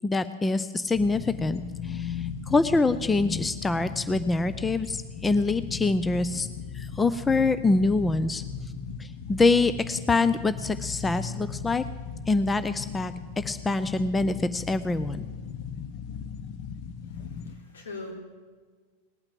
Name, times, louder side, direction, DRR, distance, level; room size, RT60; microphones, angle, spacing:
voice 1, 0.0-6.5 6.7-8.4 9.0-11.8 12.3-15.2, left 3 dB, 10° left, 12 dB, 0.5 m, -25 dB
sound 1, 0.9-17.6, left 7 dB, 45° left, 0.8 m, -37 dB
voice 2, 17.1-18.1, left 3 dB, 65° left, 0 dB, 3.5 m, -42 dB
19.5 x 8.8 x 7.6 m, 1.5 s
figure-of-eight pair, 90°, 0 cm